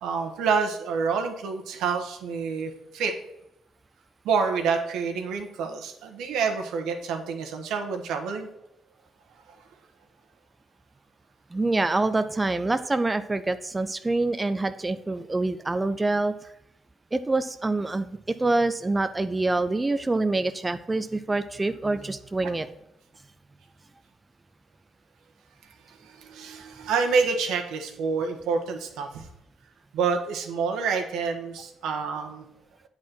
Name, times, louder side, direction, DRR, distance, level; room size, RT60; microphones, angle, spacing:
voice 1, 0.0-3.1 4.2-8.5 22.4-22.5 26.0-29.3 29.9-32.4, right 5 dB, 85° right, 4 dB, 1.3 m, -28 dB
voice 2, 11.5-16.3 17.1-22.7, right 2 dB, 20° right, 10 dB, 0.4 m, -26 dB
8.7 x 4.2 x 6.0 m, 0.84 s
cardioid pair, 90°, 0 cm